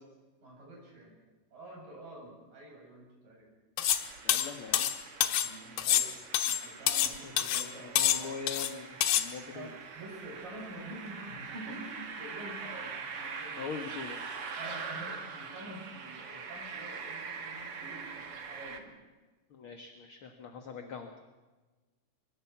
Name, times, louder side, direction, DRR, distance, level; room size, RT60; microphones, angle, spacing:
voice 1, 0.4-1.1 1.5-3.5 5.4-6.1 6.4-8.4 9.5-13.7 14.6-18.9, right 1 dB, 80° right, -1 dB, 9.5 m, -47 dB
sound 1, 3.8-4.0 4.3-5.5 5.8-7.1 7.4-7.7 8.0-8.7 9.0-9.3, left 11 dB, 85° left, 2.9 m, -27 dB
sound 2, 3.8-18.8, right 5 dB, 45° right, 2.7 m, -43 dB
voice 2, 4.2-4.9 7.2-8.9 9.2-9.7 13.6-14.2 19.5-21.2, left 5 dB, 50° left, 6 dB, 2.0 m, -42 dB
25.5 x 23.5 x 6.0 m, 1.3 s
omnidirectional pair, 3.9 m